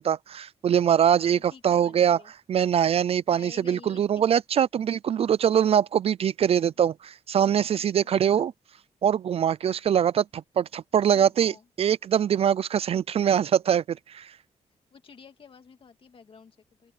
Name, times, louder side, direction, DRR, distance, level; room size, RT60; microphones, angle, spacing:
voice 1, 0.0-2.2 2.5-8.5 9.0-11.5 11.8-14.3, right 9 dB, 50° right, 0.4 m, -23 dB
voice 2, 1.2-2.3 3.3-4.1 6.5-6.7 7.7-8.5 11.1-11.7 14.9-16.9, left 5 dB, 45° left, 2.3 m, -50 dB
open air
wide cardioid pair, 140°, 13 cm